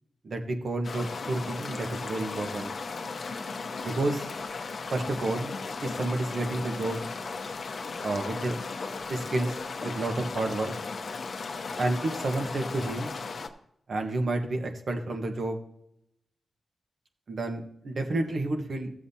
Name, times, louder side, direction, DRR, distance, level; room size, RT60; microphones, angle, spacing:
voice 1, 0.2-2.7 3.8-4.3 4.9-5.5 5.8-7.1 8.0-8.6 9.1-10.7 11.8-13.1 13.9-15.6 17.3-18.9, right 2 dB, 65° right, 4 dB, 1.3 m, -30 dB
sound 1, 0.8-13.5, left 4 dB, 65° left, 0.9 m, -36 dB
15.0 x 7.4 x 2.8 m, 0.76 s
cardioid pair, 75°, 0 cm